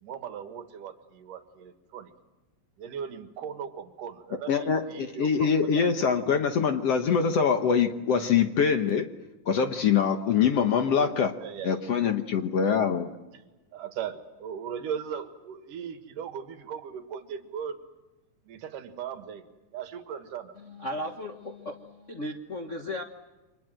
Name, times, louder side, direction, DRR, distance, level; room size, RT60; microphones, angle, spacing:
voice 1, 0.0-2.1 2.8-5.9 10.8-11.1 11.4-11.9 13.7-17.8 18.5-19.4 19.7-20.5, right 8 dB, 70° right, 9 dB, 3.1 m, -38 dB
voice 2, 4.5-9.1 9.5-11.3 11.6-13.1, left 6 dB, 60° left, 7 dB, 1.9 m, -24 dB
voice 3, 20.5-23.0, left 1 dB, 80° left, 2 dB, 0.6 m, -36 dB
30.0 x 25.5 x 7.7 m, 1.1 s
omnidirectional pair, 3.9 m